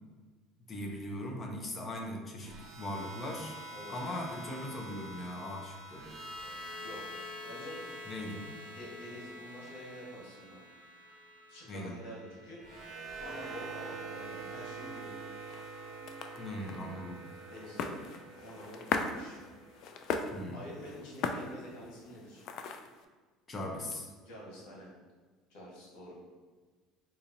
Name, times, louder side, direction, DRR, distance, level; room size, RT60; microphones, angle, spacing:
voice 1, 0.7-3.6 3.9-6.1 8.1-8.5 11.7-11.9 16.4-17.2 20.3-20.6 23.5-24.0, left 1 dB, 30° left, 1 dB, 0.6 m, -39 dB
sound 1, 2.4-20.6, right 2 dB, 55° right, 0.8 m, -46 dB
voice 2, 3.7-4.0 6.8-7.9 8.7-10.6 11.5-12.6 13.2-15.2 17.5-18.0 18.4-19.4 20.1-22.5 23.7-23.8 24.2-24.9 25.5-26.2, equal, 85° left, -4 dB, 1.4 m, -48 dB
sound 2, 15.0-23.1, left 5 dB, 60° left, 0.3 m, -39 dB
4.1 x 2.7 x 2.6 m, 1.4 s
cardioid pair, 120°, 0 cm